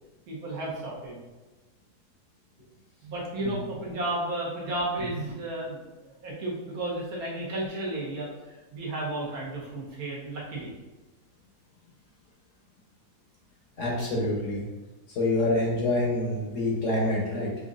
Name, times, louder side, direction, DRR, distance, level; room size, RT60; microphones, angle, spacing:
voice 1, 0.3-1.2 3.0-10.7, right 1 dB, 70° right, -5 dB, 1.5 m, -33 dB
voice 2, 13.8-14.7 15.1-17.5, left 2 dB, 60° left, -2 dB, 1.0 m, -26 dB
5.2 x 2.5 x 2.4 m, 1.2 s
omnidirectional pair, 1.7 m